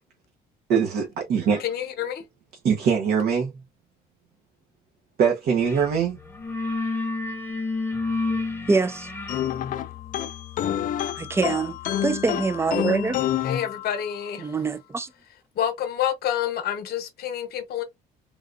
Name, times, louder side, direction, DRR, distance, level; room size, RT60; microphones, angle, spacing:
voice 1, 0.7-1.6 2.6-3.5 5.2-6.2, right 6 dB, 65° right, 1.0 m, -22 dB
voice 2, 1.6-2.2 13.4-14.5 15.5-17.8, left 10 dB, 65° left, 1.0 m, -28 dB
sound 1, 5.7-5.9 6.2-12.8, left 3 dB, 10° left, 0.8 m, -32 dB
voice 3, 8.7-9.1 11.2-13.2 14.4-15.1, right 4 dB, 15° right, 0.4 m, -25 dB
sound 2, 9.3-14.3, left 11 dB, 50° left, 0.4 m, -28 dB
3.7 x 2.4 x 2.5 m
cardioid pair, 110°, 17 cm